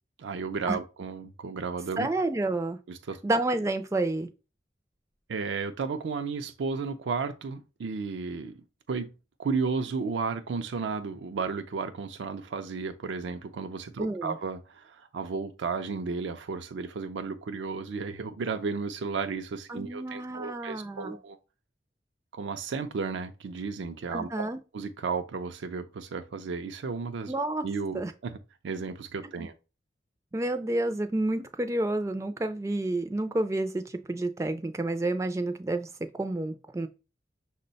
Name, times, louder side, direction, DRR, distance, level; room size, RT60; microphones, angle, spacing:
voice 1, 0.2-2.1 2.9-3.2 5.3-8.6 8.9-9.1 9.4-21.4 22.3-24.5 24.7-27.3 27.6-28.4 28.6-29.5, right 4 dB, 85° right, 0.4 m, -33 dB
voice 2, 2.0-2.8 3.2-4.3 14.0-14.3 19.7-21.2 24.1-24.6 27.3-27.7 27.9-28.1 29.4-29.5 30.3-36.9, right 2 dB, 15° right, 0.3 m, -30 dB
6.1 x 2.1 x 3.9 m
head